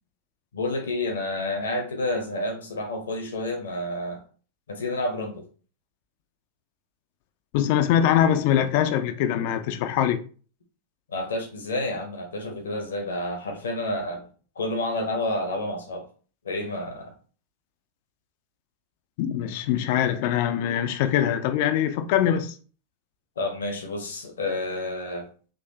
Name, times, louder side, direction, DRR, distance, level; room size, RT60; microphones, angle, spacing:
voice 1, 0.5-4.2 4.7-5.4 11.1-14.3 14.5-16.1 16.4-17.2 23.4-25.3, left 1 dB, 65° left, 0.8 m, -29 dB
voice 2, 7.5-10.2 19.2-22.5, left 10 dB, 50° left, 0.3 m, -23 dB
3.9 x 2.7 x 2.7 m
figure-of-eight pair, 90°, 0 cm